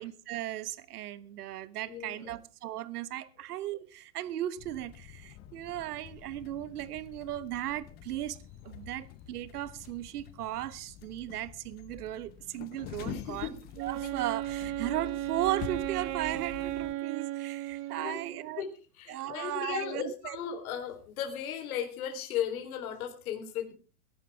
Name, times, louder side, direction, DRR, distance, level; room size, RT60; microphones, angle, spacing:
voice 1, 0.0-8.4 8.6-13.5 13.8-18.6 19.1-20.4, right 13 dB, 70° right, 1.3 m, -36 dB
voice 2, 1.9-2.4 13.0-13.6 18.0-18.2 18.6-18.7 18.9-23.7, left 9 dB, 60° left, 3.8 m, -36 dB
sound 1, 4.6-16.9, left 11 dB, 20° left, 0.6 m, -47 dB
Wind instrument woodwind instrument, 13.7-18.6, right 16 dB, 35° right, 1.1 m, -35 dB
21.0 x 11.5 x 3.5 m
supercardioid pair, 145°, 48 cm